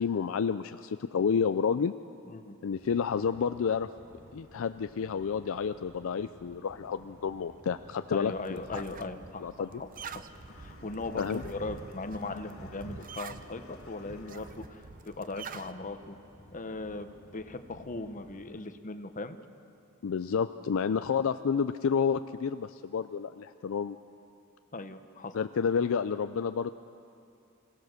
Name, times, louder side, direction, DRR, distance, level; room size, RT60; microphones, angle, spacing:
voice 1, 0.0-1.9 2.6-3.9 4.3-8.8 9.4-9.7 11.2-11.4 20.0-24.0 25.3-26.7, left 6 dB, 70° left, 10 dB, 0.4 m, -30 dB
sound 1, 2.7-18.4, equal, 15° right, 2.9 m, -55 dB
voice 2, 8.1-9.9 10.6-16.2 16.5-19.4 24.7-25.3, left 2 dB, 40° left, 9 dB, 0.9 m, -39 dB
sound 2, 8.2-15.7, right 4 dB, 40° right, 0.7 m, -46 dB
sound 3, 10.5-14.9, left 3 dB, 90° left, 2.2 m, -56 dB
26.5 x 17.0 x 6.5 m, 2.5 s
head